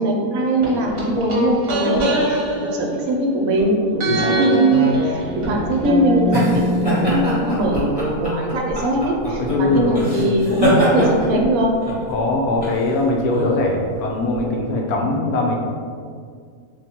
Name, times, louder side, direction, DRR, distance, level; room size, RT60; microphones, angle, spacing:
voice 1, 0.0-2.4 2.7-11.7, right 1 dB, 75° right, -1 dB, 1.1 m, -20 dB
sound 1, 0.6-3.6 4.0-7.8 8.1-8.2, equal, 45° right, 1.0 m, -24 dB
sound 2, 5.2-14.4, equal, 20° left, 0.8 m, -24 dB
voice 2, 9.4-10.5 12.1-15.6, left 2 dB, 85° left, -1 dB, 1.1 m, -21 dB
3.7 x 2.2 x 4.1 m, 2.1 s
omnidirectional pair, 1.5 m